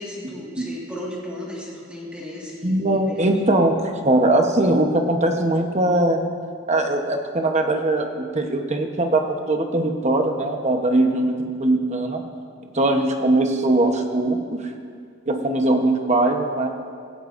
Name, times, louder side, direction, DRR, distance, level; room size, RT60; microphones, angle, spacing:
voice 1, 0.0-3.3, left 1 dB, 5° right, -5 dB, 1.8 m, -35 dB
voice 2, 2.6-6.2 6.7-12.2 12.7-14.6 15.3-16.7, right 2 dB, 35° right, 4 dB, 1.0 m, -21 dB
16.5 x 15.5 x 2.6 m, 2.2 s
head